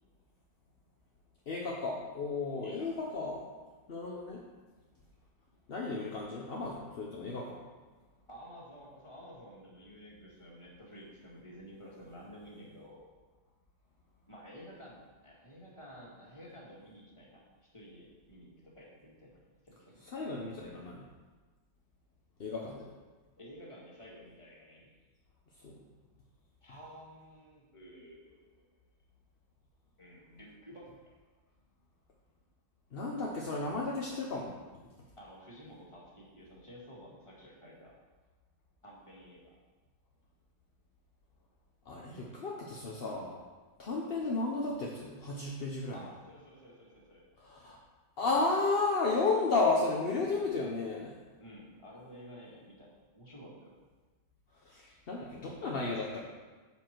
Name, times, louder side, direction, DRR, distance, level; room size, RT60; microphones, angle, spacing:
voice 1, 1.5-3.5 3.9-4.4 5.7-7.6 20.0-21.0 22.4-22.9 25.6-25.7 32.9-34.5 41.9-43.4 43.8-46.0 47.4-47.8 48.2-51.2 54.6-56.3, left 3 dB, 45° left, -2 dB, 0.8 m, -33 dB
voice 2, 2.6-2.9 8.3-13.1 14.3-20.0 23.4-24.9 26.6-28.6 30.0-31.1 35.2-38.0 38.8-39.6 45.9-47.2 51.4-53.7, equal, 15° left, -4 dB, 2.0 m, -52 dB
8.3 x 7.3 x 4.5 m, 1.3 s
omnidirectional pair, 1.9 m